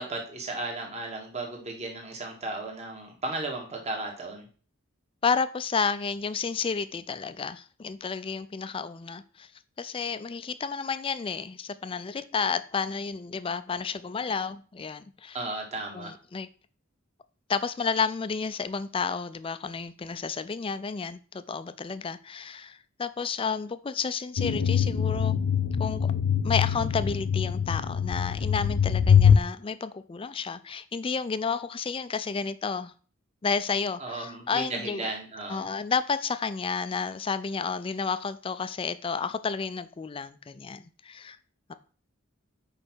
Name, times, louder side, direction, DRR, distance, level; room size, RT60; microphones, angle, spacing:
voice 1, 0.0-4.5 15.3-16.1 34.0-35.7, right 2 dB, 30° right, 1 dB, 1.5 m, -35 dB
voice 2, 5.2-9.5 9.8-15.4 15.9-16.5 17.5-25.4 25.8-26.1 26.4-32.9 33.4-35.1 35.5-41.4, left 5 dB, 25° left, 13 dB, 0.4 m, -31 dB
sound 1, 24.4-29.4, left 7 dB, 85° left, 0.5 m, -23 dB
5.3 x 4.8 x 6.2 m, 0.41 s
head